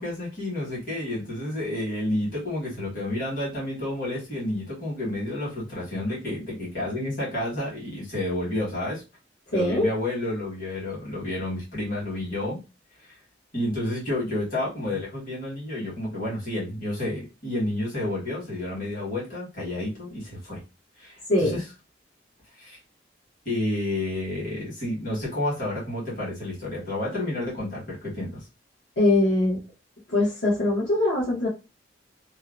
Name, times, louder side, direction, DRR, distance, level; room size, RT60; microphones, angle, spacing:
voice 1, 0.0-9.0 9.5-12.6 13.1-13.2 13.5-20.6 21.0-21.6 22.6-22.8 23.4-28.4, left 1 dB, 50° left, -6 dB, 1.4 m, -30 dB
voice 2, 9.5-9.9 21.3-21.6 29.0-29.6 30.1-31.5, left 1 dB, 75° left, -6 dB, 1.0 m, -22 dB
2.7 x 2.1 x 2.5 m, 0.29 s
head